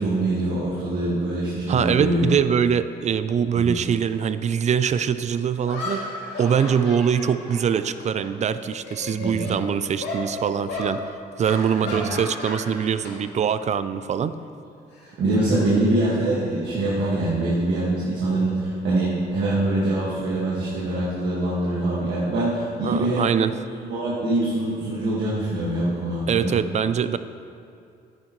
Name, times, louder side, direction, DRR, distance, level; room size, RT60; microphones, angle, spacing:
voice 1, 0.0-2.3 3.5-3.7 9.1-9.6 11.8-12.0 15.2-23.3 23.8-26.5, right 2 dB, 80° right, -8 dB, 1.8 m, -24 dB
voice 2, 1.7-6.0 6.4-11.0 11.4-14.3 22.8-23.5 26.3-27.2, right 7 dB, 40° right, 13 dB, 0.4 m, -23 dB
sound 1, 4.8-4.9 5.6-8.3 8.6-9.6 10.0-10.2 10.7-10.9 11.4-13.1 13.4-13.7 14.9-16.4, left 2 dB, 75° left, 2.2 m, -34 dB
9.6 x 9.6 x 3.1 m, 2.4 s
cardioid pair, 90°, 18 cm